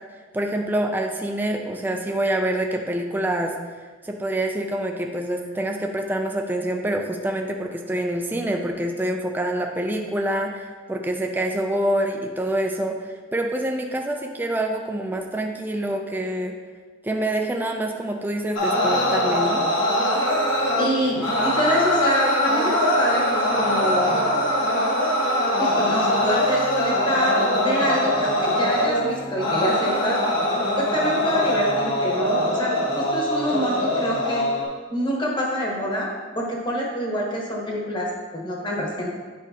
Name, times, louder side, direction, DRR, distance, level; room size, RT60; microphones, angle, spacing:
voice 1, 0.3-3.5 4.0-16.5 17.0-19.6, right 1 dB, 10° right, 2 dB, 0.3 m, -26 dB
sound 1, 18.5-34.6, equal, 80° left, 1.3 m, -22 dB
voice 2, 20.8-24.2 25.6-30.2 30.8-34.5 34.9-39.1, equal, 25° left, -2 dB, 1.1 m, -26 dB
8.2 x 5.1 x 2.8 m, 1.4 s
head